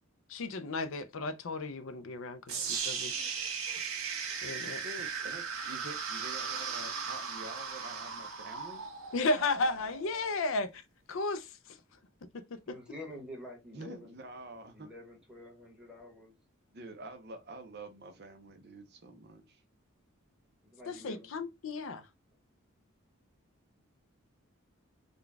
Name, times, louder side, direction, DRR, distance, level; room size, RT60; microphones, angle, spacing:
voice 1, 0.3-3.1 4.4-4.8 9.1-10.8 11.1-11.8 12.5-12.8 20.9-22.1, left 3 dB, 65° left, 0.5 m, -34 dB
sound 1, 2.5-10.5, right 6 dB, 85° right, 1.3 m, -37 dB
voice 2, 4.8-8.8 13.7-14.9 16.7-19.6, right 2 dB, 50° right, 0.7 m, -47 dB
voice 3, 12.6-14.2 14.7-16.3 20.6-21.3, left 1 dB, 5° right, 1.2 m, -48 dB
3.8 x 2.3 x 3.3 m
head